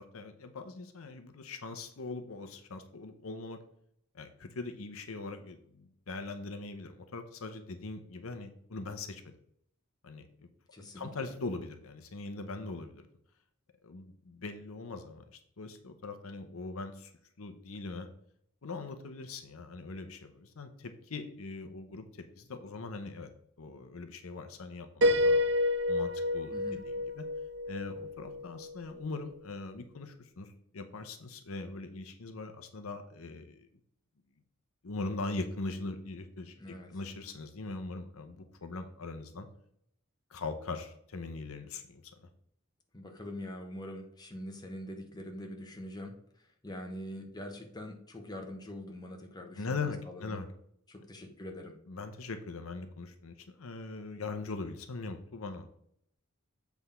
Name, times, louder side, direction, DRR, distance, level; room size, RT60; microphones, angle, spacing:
voice 1, 0.0-3.6 4.1-9.2 10.0-10.5 10.8-13.0 13.8-17.1 17.4-18.1 18.6-23.3 23.6-25.4 25.9-26.5 26.9-27.2 27.7-33.7 34.8-39.5 40.3-42.3 49.6-50.5 51.9-55.7, left 3 dB, 70° left, 7 dB, 0.8 m, -41 dB
voice 2, 10.7-11.3 26.5-26.8 36.6-36.9 42.9-50.4 50.9-51.7, left 1 dB, 20° left, 2 dB, 1.1 m, -44 dB
Piano, 25.0-28.8, left 1 dB, 55° right, 1.3 m, -29 dB
7.9 x 3.5 x 5.5 m, 0.70 s
head